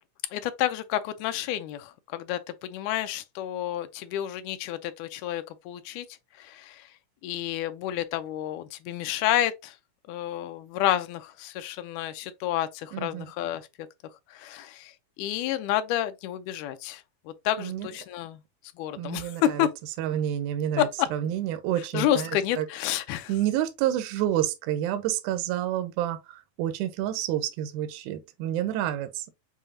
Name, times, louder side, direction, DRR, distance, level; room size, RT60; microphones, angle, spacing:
voice 1, 0.3-6.1 6.4-6.9 7.2-9.8 10.1-13.9 14.3-18.4 18.8-19.7 20.8-20.9 21.9-23.3, left 12 dB, 80° left, 2.0 m, -30 dB
voice 2, 12.9-13.3 17.6-17.9 19.0-19.7 20.0-22.7 23.3-29.3, right 12 dB, 75° right, 1.9 m, -29 dB
7.0 x 2.7 x 2.7 m
omnidirectional pair, 3.8 m